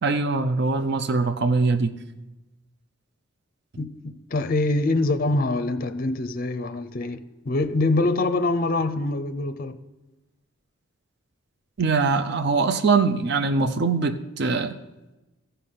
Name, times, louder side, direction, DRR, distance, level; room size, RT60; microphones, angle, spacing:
voice 1, 0.0-1.9 11.8-14.7, right 4 dB, 55° right, 0.5 m, -22 dB
voice 2, 3.8-9.8, left 2 dB, 45° left, 0.5 m, -25 dB
14.0 x 5.6 x 5.6 m
head